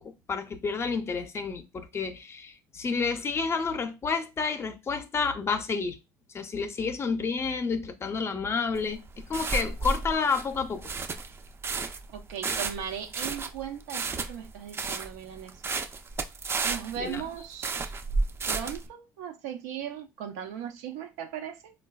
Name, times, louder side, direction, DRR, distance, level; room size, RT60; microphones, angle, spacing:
voice 1, 0.0-6.0 6.3-10.9 17.0-17.2, left 5 dB, 30° left, 0.5 m, -30 dB
sound 1, 8.7-18.9, right 4 dB, 30° right, 0.4 m, -32 dB
voice 2, 12.1-15.5 16.6-17.9 18.5-21.7, right 9 dB, 90° right, 0.5 m, -38 dB
3.8 x 2.2 x 2.2 m
supercardioid pair, 90°, 8 cm